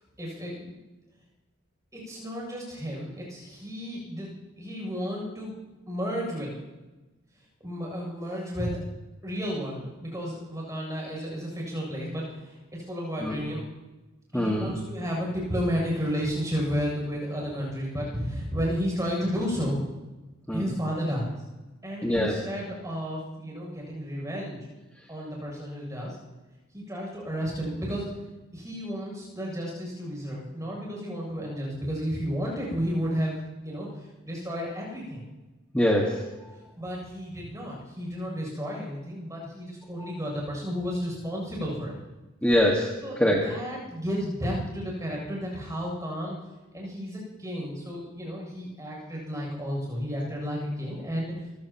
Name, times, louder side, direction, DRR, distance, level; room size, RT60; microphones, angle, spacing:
voice 1, 0.2-0.8 1.9-5.6 5.9-6.5 7.6-8.8 9.2-13.6 14.3-19.8 20.5-21.4 21.8-24.7 25.1-26.2 26.7-28.1 28.5-35.3 36.8-42.0 43.0-46.4 46.7-51.5, equal, 15° right, -2 dB, 7.5 m, -32 dB
voice 2, 14.3-14.8 20.5-20.6 22.0-22.4 35.7-36.2 42.4-42.9 43.2-43.5, left 1 dB, 5° left, -2 dB, 1.7 m, -23 dB
28.0 x 16.5 x 3.0 m, 1.1 s
head